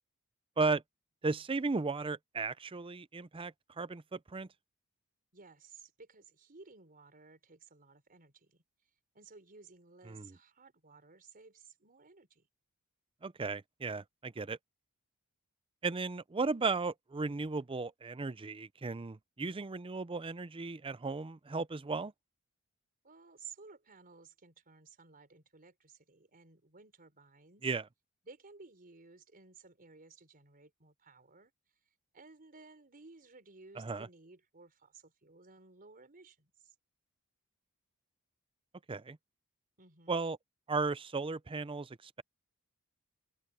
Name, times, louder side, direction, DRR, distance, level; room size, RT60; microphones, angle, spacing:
voice 1, 1.2-4.5 10.1-10.3 13.2-14.6 15.8-22.1 27.6-27.8 33.8-34.1 38.9-39.2 40.1-40.4 40.7-42.2, right 4 dB, 25° right, 0.5 m, -35 dB
voice 2, 5.3-8.6 9.1-12.5 23.0-27.7 28.2-31.5 32.1-36.7 39.8-40.2, right 4 dB, 40° right, 4.5 m, -56 dB
open air
head